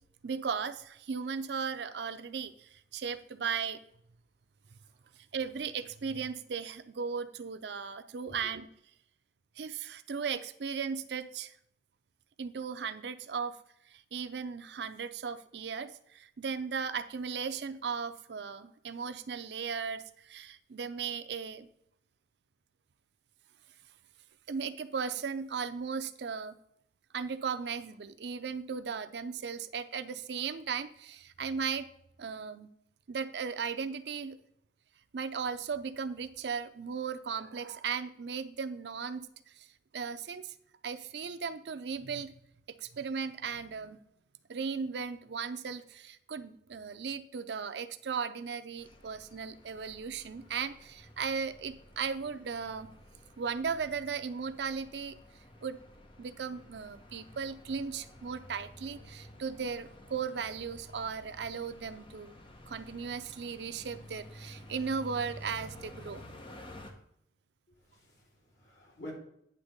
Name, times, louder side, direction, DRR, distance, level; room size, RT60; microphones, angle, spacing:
voice 1, 0.2-3.8 4.7-4.8 5.2-8.7 9.6-11.6 12.4-13.6 13.9-21.7 24.5-26.6 27.1-31.9 32.2-32.7 33.1-34.4 35.1-39.7 39.9-40.5 40.8-42.3 42.8-44.0 44.5-52.9 53.4-55.2 55.6-55.8 56.2-62.3 62.7-66.2, right 6 dB, 70° right, 0.5 m, -37 dB
sound 1, 48.8-66.9, left 1 dB, 30° left, 0.9 m, -52 dB
voice 2, 67.7-69.1, left 1 dB, 75° left, 2.9 m, -49 dB
9.7 x 3.5 x 6.5 m
head